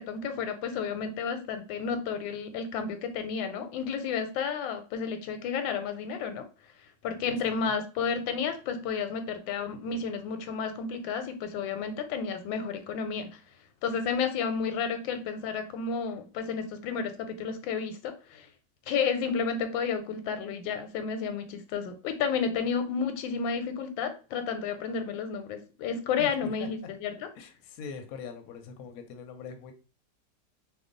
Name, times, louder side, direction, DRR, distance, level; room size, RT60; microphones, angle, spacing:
voice 1, 0.0-6.4 7.0-13.3 13.8-18.5 18.9-27.3, left 6 dB, 90° left, 1.3 m, -31 dB
voice 2, 26.2-26.7 27.4-29.7, left 6 dB, 70° left, 0.9 m, -42 dB
3.0 x 2.2 x 3.7 m
omnidirectional pair, 2.0 m